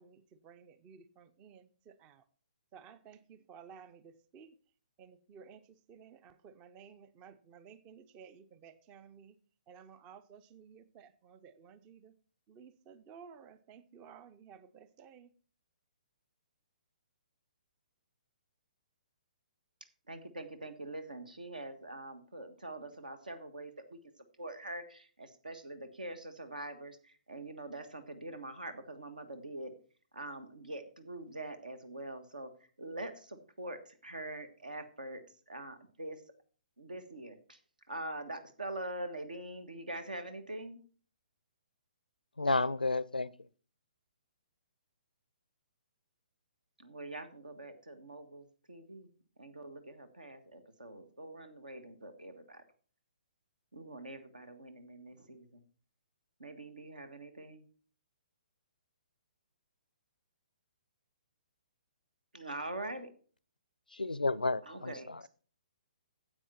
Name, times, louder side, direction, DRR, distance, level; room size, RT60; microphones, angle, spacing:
voice 1, 0.0-2.3 2.7-4.6 5.0-9.4 9.7-12.1 12.5-15.3, right 6 dB, 20° right, 0.5 m, -55 dB
voice 2, 20.1-24.0 24.4-29.7 30.1-32.5 32.8-35.2 35.5-36.2 36.8-37.6 37.9-40.8 46.8-49.1 49.4-52.6 53.7-55.6 56.4-57.6 62.3-63.1 64.7-65.3, right 2 dB, 70° right, 1.5 m, -44 dB
voice 3, 42.4-43.3 63.9-65.2, left 3 dB, 80° left, 0.4 m, -31 dB
9.8 x 7.8 x 4.3 m
figure-of-eight pair, 125°, 5 cm